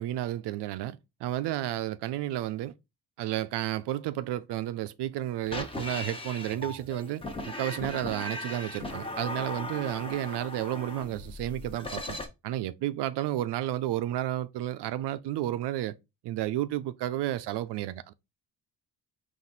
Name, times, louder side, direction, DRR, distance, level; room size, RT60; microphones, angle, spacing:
voice 1, 0.0-2.7 3.2-12.2 12.4-16.0 16.2-18.1, right 13 dB, 70° right, 0.5 m, -32 dB
sound 1, 5.4-12.3, left 1 dB, 10° left, 1.1 m, -38 dB
4.1 x 2.7 x 3.9 m
cardioid pair, 85°, 43 cm